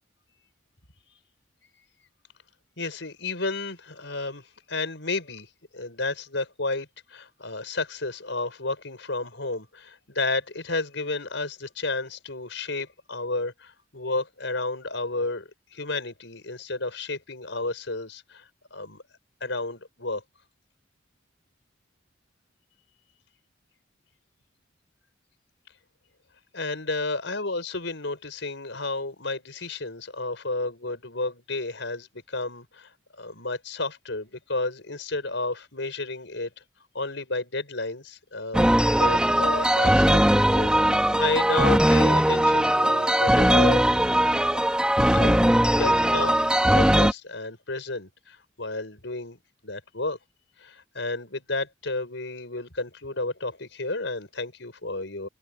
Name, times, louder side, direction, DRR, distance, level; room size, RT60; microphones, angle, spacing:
voice 1, 2.8-5.5 5.7-19.0 19.4-20.2 26.5-36.5 36.9-43.9 44.4-44.6 45.1-46.4 46.7-50.2 50.6-55.3, left 2 dB, 70° left, 6.6 m, -32 dB
sound 1, 38.5-47.1, right 1 dB, 5° right, 2.2 m, -20 dB
head